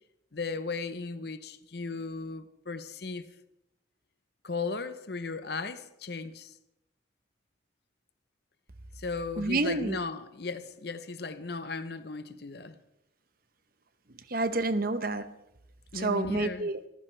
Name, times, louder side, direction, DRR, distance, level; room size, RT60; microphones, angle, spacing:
voice 1, 0.3-3.2 4.4-6.5 9.0-12.8 15.9-16.7, left 4 dB, 55° left, 0.8 m, -36 dB
voice 2, 9.4-10.0 14.3-15.3 15.9-16.8, right 2 dB, 50° right, 0.9 m, -29 dB
25.5 x 14.5 x 3.3 m
head